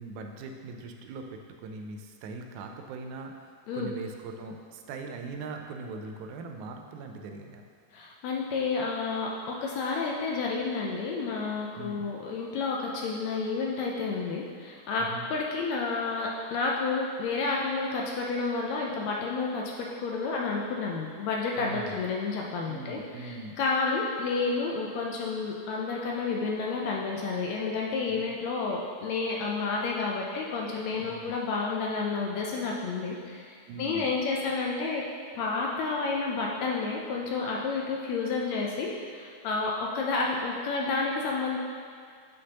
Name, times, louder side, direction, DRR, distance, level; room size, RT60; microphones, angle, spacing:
voice 1, 0.0-7.6 11.7-12.1 15.0-15.3 21.6-22.0 22.7-23.6 28.1-28.3 30.9-31.3 33.7-34.1, right 3 dB, 85° right, 4 dB, 2.0 m, -41 dB
voice 2, 7.9-35.1 35.4-41.6, left 4 dB, 80° left, -1 dB, 1.6 m, -30 dB
7.8 x 5.4 x 2.8 m, 2.2 s
omnidirectional pair, 3.5 m